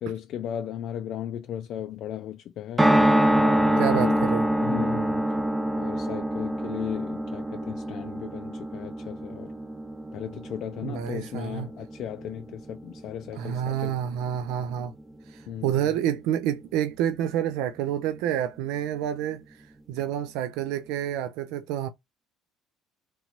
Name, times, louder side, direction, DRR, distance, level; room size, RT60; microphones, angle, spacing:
voice 1, 0.0-3.0 3.3-4.3 4.6-5.2 5.8-9.5 10.1-14.0 15.5-15.9, left 10 dB, 60° left, 0.3 m, -36 dB
sound 1, 2.8-15.0 15.3-15.4 15.6-15.7, right 1 dB, 10° right, 0.4 m, -26 dB
voice 2, 3.8-4.5 10.8-11.7 13.3-14.9 15.3-21.9, right 10 dB, 80° right, 0.3 m, -29 dB
3.0 x 2.5 x 2.9 m
supercardioid pair, 80°, 0 cm